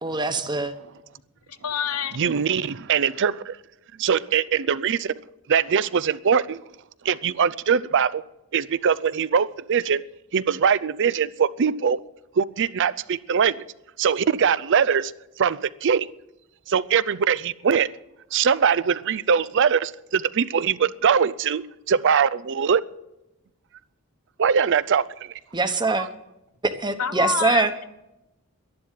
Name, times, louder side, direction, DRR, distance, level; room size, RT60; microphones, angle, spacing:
voice 1, 0.0-0.7 25.5-26.1 26.6-27.7, right 3 dB, 20° right, 1.1 m, -23 dB
voice 2, 1.5-2.2 27.0-27.8, left 7 dB, 85° left, 1.0 m, -27 dB
voice 3, 2.2-3.6 4.0-5.1 5.5-6.6 7.0-8.2 8.5-10.0 10.3-12.0 12.4-13.6 14.0-15.1 15.4-16.1 16.7-17.9 18.3-22.8 24.4-25.3 26.0-26.1, right 7 dB, 60° right, 0.5 m, -22 dB
12.0 x 11.0 x 7.4 m
head